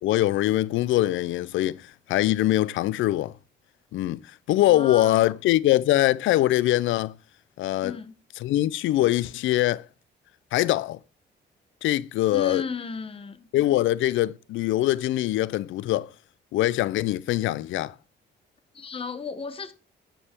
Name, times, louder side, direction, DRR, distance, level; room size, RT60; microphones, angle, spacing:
voice 1, 0.0-3.3 3.9-4.2 4.5-7.1 7.6-7.9 8.4-9.9 10.5-11.0 11.8-12.6 13.5-16.1 16.5-17.9, left 15 dB, 80° left, 0.5 m, -23 dB
voice 2, 4.7-5.4 7.8-8.2 12.3-13.5 18.7-19.7, left 5 dB, 30° left, 0.9 m, -34 dB
9.9 x 5.5 x 4.4 m
cardioid pair, 90°, 20 cm